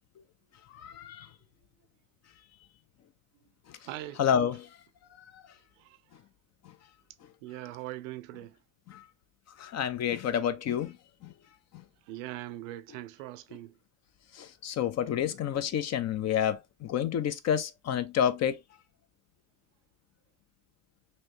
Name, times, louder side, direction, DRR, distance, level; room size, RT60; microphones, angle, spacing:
voice 1, 0.7-1.3 4.2-4.7 5.3-5.4 8.9-9.0 9.6-11.0 11.2-11.3 11.7-11.8 14.3-18.6, left 9 dB, 45° left, 0.6 m, -29 dB
voice 2, 3.9-4.2 5.8-6.0 7.4-8.6 12.1-13.7, right 15 dB, 90° right, 0.5 m, -41 dB
3.0 x 2.8 x 2.9 m
supercardioid pair, 90°, 38 cm